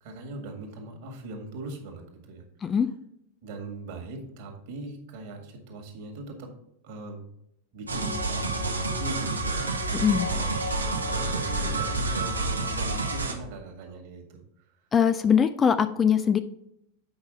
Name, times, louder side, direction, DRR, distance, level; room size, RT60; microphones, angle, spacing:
voice 1, 0.0-2.8 3.4-6.6 6.8-7.3 7.7-9.9 10.3-10.7 11.1-14.4, right 2 dB, 50° right, 4 dB, 1.9 m, -40 dB
sound 1, 7.9-13.3, right 2 dB, 75° right, 1.1 m, -28 dB
voice 2, 9.9-10.3 14.9-16.4, left 7 dB, 20° left, 11 dB, 0.4 m, -22 dB
8.0 x 5.4 x 4.1 m, 0.78 s
figure-of-eight pair, 90°, 0 cm